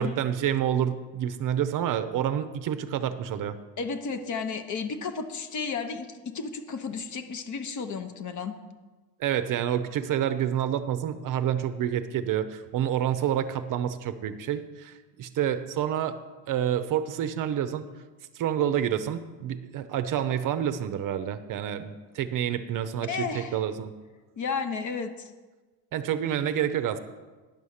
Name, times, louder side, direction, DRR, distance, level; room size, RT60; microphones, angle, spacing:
voice 1, 0.0-3.6 9.2-16.2 16.5-17.8 18.3-23.9 25.9-27.0, right 10 dB, 50° right, 11 dB, 0.6 m, -28 dB
voice 2, 3.8-8.5 23.0-23.6 24.4-25.3, left 5 dB, 45° left, 8 dB, 0.8 m, -33 dB
10.5 x 5.5 x 6.4 m, 1.3 s
cardioid pair, 135°, 42 cm